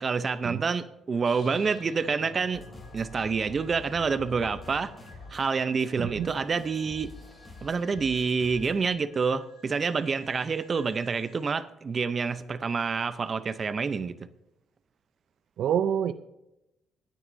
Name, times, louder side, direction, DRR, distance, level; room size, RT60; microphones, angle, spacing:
voice 1, 0.0-2.6 2.9-4.9 5.3-7.1 7.6-14.3, right 5 dB, 40° right, 0.7 m, -28 dB
sound 1, 1.2-11.5, left 2 dB, 80° left, 2.4 m, -52 dB
sound 2, 2.5-8.9, left 2 dB, 25° left, 6.0 m, -47 dB
voice 2, 5.9-6.3 15.6-16.1, right 9 dB, 75° right, 0.5 m, -27 dB
26.5 x 9.2 x 2.7 m
cardioid pair, 90°, 0 cm